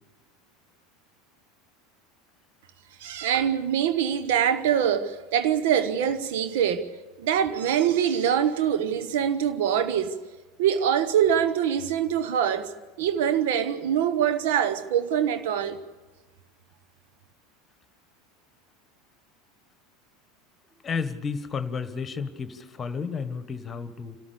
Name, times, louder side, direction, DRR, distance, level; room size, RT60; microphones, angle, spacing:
voice 1, 3.0-6.9 7.2-10.2 10.6-12.7 13.0-15.8, right 9 dB, 60° right, 1.1 m, -24 dB
voice 2, 20.8-24.2, left 5 dB, 25° left, 1.5 m, -32 dB
28.5 x 13.0 x 8.5 m
figure-of-eight pair, 75°, 0 cm